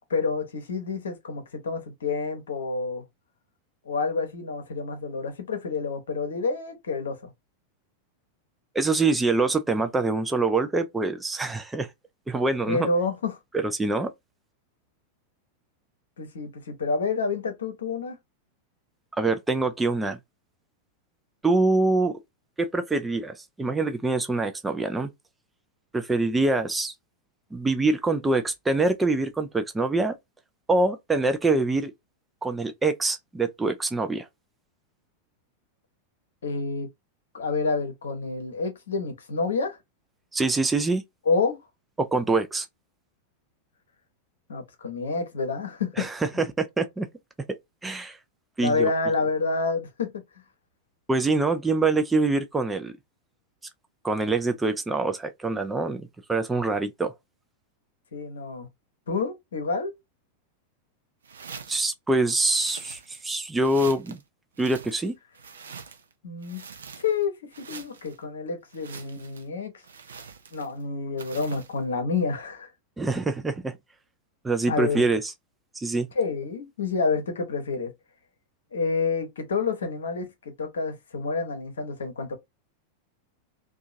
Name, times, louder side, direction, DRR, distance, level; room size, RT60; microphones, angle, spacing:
voice 1, 0.1-3.0 3.9-7.3 12.7-13.4 16.2-18.2 36.4-36.9 37.3-39.8 41.3-41.6 44.5-46.1 48.6-50.1 58.1-58.7 59.1-59.9 66.2-66.6 67.0-69.7 70.5-72.7 74.7-75.1 76.1-77.9 78.7-82.3, left 4 dB, 65° left, 0.8 m, -28 dB
voice 2, 8.7-11.9 12.3-12.9 13.5-14.1 19.2-20.2 21.4-22.2 22.6-25.1 25.9-26.9 27.5-30.2 30.7-31.9 32.4-34.3 40.3-41.0 42.0-42.7 46.0-47.1 47.8-48.2 48.6-48.9 51.1-52.9 54.0-57.1 61.7-64.2 64.6-65.2 73.0-73.7 74.4-75.3 75.7-76.1, right 3 dB, 10° right, 0.4 m, -25 dB
sound 1, 61.2-61.9 62.4-63.3 63.6-64.2 64.5-66.1 66.4-67.2 67.5-68.2 68.7-69.5 69.8-70.8 71.2-71.8, right 5 dB, 70° right, 0.5 m, -44 dB
2.7 x 2.3 x 2.5 m
figure-of-eight pair, 90°, 0 cm